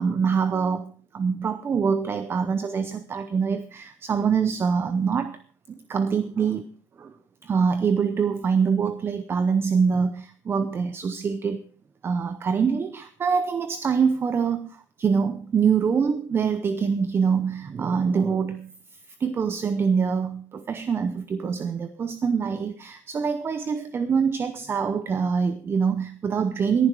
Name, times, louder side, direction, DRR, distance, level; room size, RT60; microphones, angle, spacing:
voice 1, 0.0-5.4 5.9-6.7 7.0-7.1 7.4-11.6 12.0-18.7 19.2-26.9, right 6 dB, 20° right, 12 dB, 0.7 m, -24 dB
18.0 x 11.0 x 4.7 m, 0.40 s
cardioid pair, 160°, 10 cm